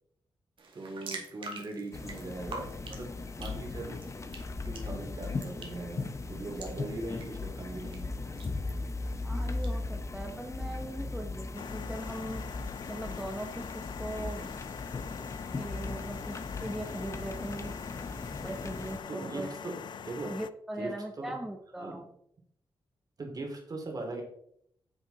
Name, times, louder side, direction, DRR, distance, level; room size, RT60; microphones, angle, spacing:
sound 1, 0.6-9.7, right 3 dB, 70° right, 2.1 m, -48 dB
voice 1, 0.7-4.0 4.6-8.1 8.6-8.9 19.1-19.8 20.0-20.3 20.8-21.3 21.8-22.0 23.2-24.2, right 2 dB, 45° right, 2 dB, 2.6 m, -40 dB
sound 2, 1.9-19.0, left 3 dB, 35° left, 0.8 m, -38 dB
voice 2, 9.2-12.4 12.9-14.5 15.6-17.7 18.4-19.5 20.2-22.1, right 1 dB, 5° right, 2 dB, 0.9 m, -40 dB
sound 3, 11.5-20.5, left 7 dB, 60° left, 0.4 m, -43 dB
9.4 x 7.2 x 3.9 m, 0.70 s
wide cardioid pair, 120°, 9 cm